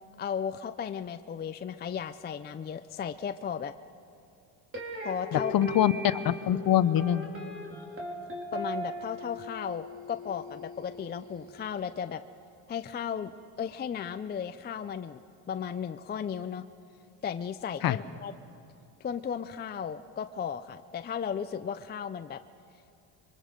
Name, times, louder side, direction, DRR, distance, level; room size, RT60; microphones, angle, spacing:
voice 1, 0.2-3.7 5.0-5.5 8.5-12.2 12.7-13.3 13.6-15.2 15.5-16.6 17.2-18.3 19.0-22.4, left 7 dB, 20° left, 10 dB, 0.4 m, -35 dB
sound 1, 4.7-11.8, equal, 25° right, 3.7 m, -39 dB
voice 2, 5.3-7.3 17.8-18.0, left 11 dB, 50° left, 14 dB, 0.8 m, -24 dB
27.0 x 23.5 x 5.2 m, 2.7 s
cardioid pair, 110°, 47 cm